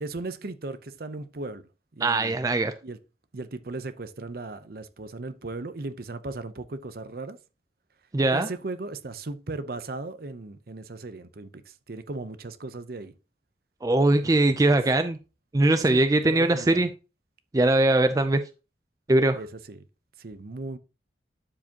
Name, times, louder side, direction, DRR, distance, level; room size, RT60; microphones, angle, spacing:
voice 1, 0.0-1.7 1.9-2.4 2.8-3.0 3.3-7.4 8.3-13.1 14.2-14.8 15.8-16.9 19.3-19.8 20.2-20.8, right 2 dB, 55° right, 0.7 m, -37 dB
voice 2, 2.0-2.7 8.1-8.5 13.8-15.2 15.5-16.9 17.5-18.4 19.1-19.4, right 2 dB, 20° right, 0.4 m, -21 dB
12.0 x 4.9 x 2.8 m
head